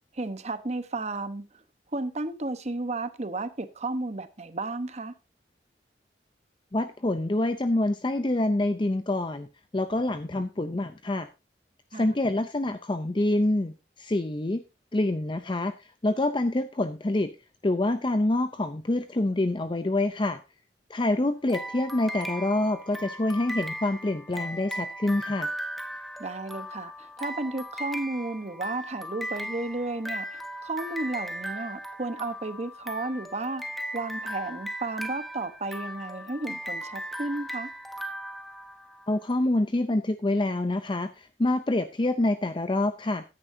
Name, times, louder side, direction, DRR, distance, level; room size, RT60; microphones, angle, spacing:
voice 1, 0.1-1.6 1.9-5.1 11.9-12.1 26.2-33.6 33.9-37.7, right 2 dB, 40° right, 1.0 m, -33 dB
voice 2, 6.7-9.5 9.7-11.3 11.9-14.6 14.9-17.3 17.6-20.4 20.9-25.5 39.1-43.2, left 2 dB, 25° left, 0.6 m, -26 dB
sound 1, 21.5-39.2, equal, ahead, 0.9 m, -37 dB
14.0 x 9.9 x 2.7 m
head